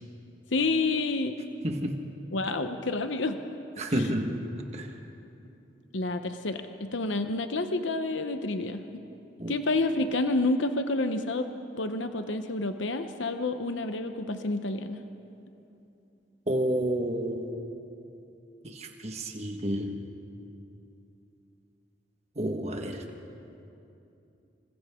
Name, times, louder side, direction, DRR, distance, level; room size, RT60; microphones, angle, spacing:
voice 1, 0.5-1.3 2.3-3.4 5.9-8.8 9.5-11.5 11.8-15.0, left 2 dB, 85° left, 7 dB, 0.9 m, -29 dB
voice 2, 1.6-2.0 3.8-4.4 4.7-4.9 9.4-9.6 16.5-17.6 18.6-20.0 22.4-23.0, right 1 dB, 35° right, 3 dB, 1.6 m, -30 dB
27.5 x 26.0 x 3.8 m, 2.8 s
head